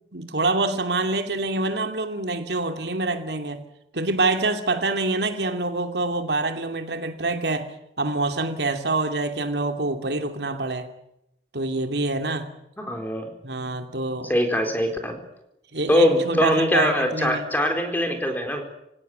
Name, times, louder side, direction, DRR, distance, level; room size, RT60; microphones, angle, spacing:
voice 1, 0.1-3.6 3.9-7.7 8.0-10.9 11.5-12.5 13.4-14.3 15.7-17.4, right 2 dB, 75° right, 6 dB, 2.7 m, -26 dB
voice 2, 12.8-13.3 14.3-15.2 15.9-18.6, equal, 10° left, 4 dB, 4.1 m, -22 dB
27.0 x 17.0 x 9.5 m, 0.82 s
head